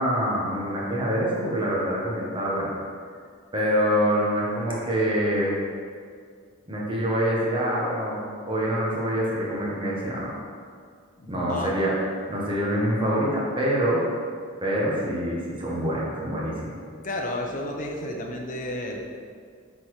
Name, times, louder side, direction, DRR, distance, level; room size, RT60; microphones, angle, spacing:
voice 1, 0.0-2.7 3.5-5.5 6.7-10.3 11.3-11.9 12.3-14.0 14.6-16.7, equal, 25° right, -5 dB, 1.5 m, -25 dB
voice 2, 11.2-11.7 17.0-19.0, left 1 dB, 40° left, 1 dB, 0.9 m, -32 dB
8.0 x 4.4 x 4.9 m, 2.1 s
head